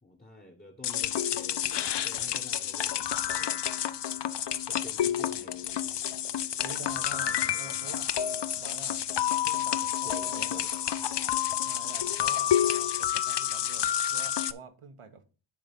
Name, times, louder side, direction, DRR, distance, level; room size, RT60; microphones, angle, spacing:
voice 1, 0.0-3.7 4.7-6.0 7.5-7.9 10.0-11.3, left 1 dB, 20° left, 1.3 m, -50 dB
sound 1, 0.8-14.5, left 10 dB, 60° left, 0.5 m, -29 dB
voice 2, 6.6-8.1 8.5-9.0 9.4-10.6 11.6-15.2, right 5 dB, 90° right, 1.3 m, -47 dB
10.0 x 3.9 x 5.3 m
wide cardioid pair, 95°, 50 cm